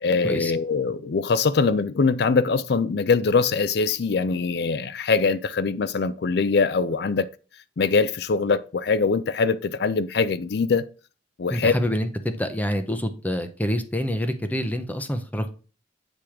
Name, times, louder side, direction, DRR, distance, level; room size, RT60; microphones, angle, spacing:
voice 1, 0.0-7.3 7.8-10.9 11.4-11.7, left 4 dB, 65° left, 0.4 m, -22 dB
voice 2, 11.5-15.5, equal, 10° left, 0.7 m, -26 dB
8.6 x 3.1 x 4.9 m
head